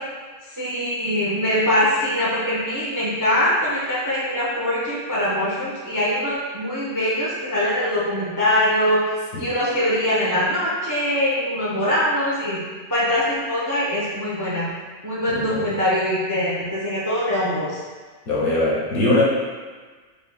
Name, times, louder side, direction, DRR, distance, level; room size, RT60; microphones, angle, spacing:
voice 1, 0.5-12.6 12.9-14.7 15.0-17.8, left 1 dB, 25° right, -7 dB, 0.4 m, -23 dB
voice 2, 15.3-15.6 18.3-19.2, left 2 dB, 90° left, -5 dB, 1.5 m, -21 dB
4.7 x 2.4 x 3.4 m, 1.4 s
omnidirectional pair, 1.5 m